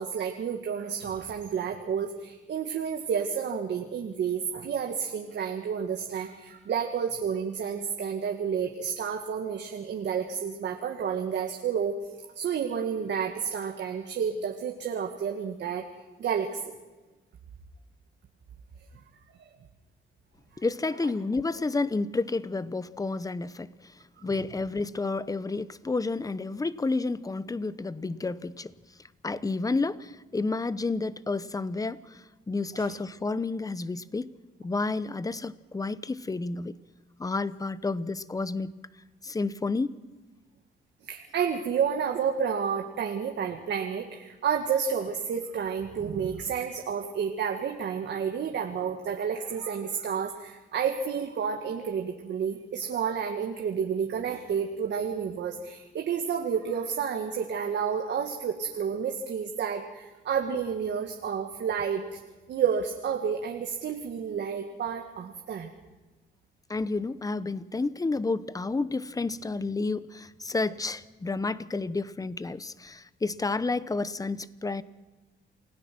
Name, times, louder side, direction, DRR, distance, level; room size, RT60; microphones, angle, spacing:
voice 1, 0.0-11.9 12.4-15.8 16.2-16.7 19.3-19.5 32.7-32.9 41.0-62.2 62.5-65.7, right 7 dB, 65° right, 3 dB, 1.9 m, -30 dB
voice 2, 20.6-23.7 24.2-28.7 29.2-36.7 37.2-38.7 39.2-40.0 66.7-74.8, left 3 dB, 20° left, 16 dB, 0.8 m, -30 dB
28.5 x 17.0 x 6.1 m, 1.2 s
cardioid pair, 90°, 20 cm